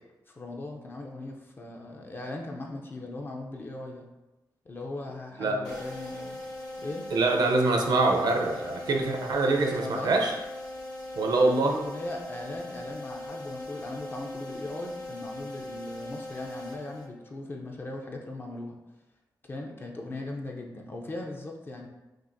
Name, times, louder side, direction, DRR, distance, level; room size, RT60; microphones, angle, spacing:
voice 1, 0.3-4.1 4.7-6.4 6.8-7.0 9.4-10.1 11.2-18.7 19.5-21.9, left 2 dB, 30° left, 0 dB, 0.5 m, -39 dB
sound 1, 5.6-17.4, left 1 dB, 55° left, 0.9 m, -40 dB
voice 2, 7.1-10.3 11.2-11.8, right 2 dB, 65° right, 2 dB, 0.6 m, -24 dB
5.9 x 2.4 x 2.6 m, 1.1 s
wide cardioid pair, 135°, 7 cm